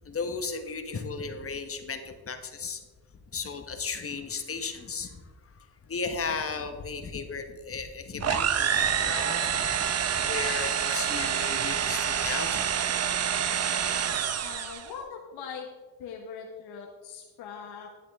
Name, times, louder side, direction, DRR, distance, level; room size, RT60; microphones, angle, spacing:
voice 1, 0.0-2.8 3.3-5.2 5.6-9.9 10.1-12.7, left 4 dB, 35° left, 7 dB, 1.1 m, -35 dB
sound 1, 8.2-14.9, right 8 dB, 40° right, 0.7 m, -27 dB
voice 2, 14.4-15.7 16.0-17.9, left 6 dB, 75° left, 0 dB, 1.4 m, -41 dB
11.0 x 8.6 x 3.5 m, 1.4 s
cardioid pair, 95°, 40 cm